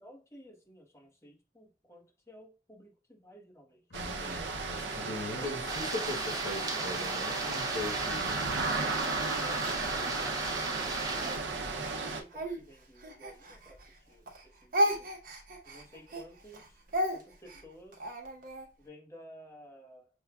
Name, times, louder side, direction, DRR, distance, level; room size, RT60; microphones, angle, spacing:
voice 1, 0.0-4.4 4.7-5.6 9.0-15.1 15.6-16.8 17.1-18.1 18.8-20.1, equal, 15° left, 1.0 m, -54 dB
voice 2, 3.9-8.4, left 2 dB, 65° left, 1.1 m, -40 dB
sound 1, 3.9-12.2, right 3 dB, 85° right, 0.6 m, -35 dB
sound 2, 5.7-11.4, right 3 dB, 20° right, 0.7 m, -36 dB
Speech, 7.5-10.6 11.2-14.0 14.3-18.7, equal, 55° right, 0.9 m, -35 dB
6.3 x 2.3 x 2.3 m
head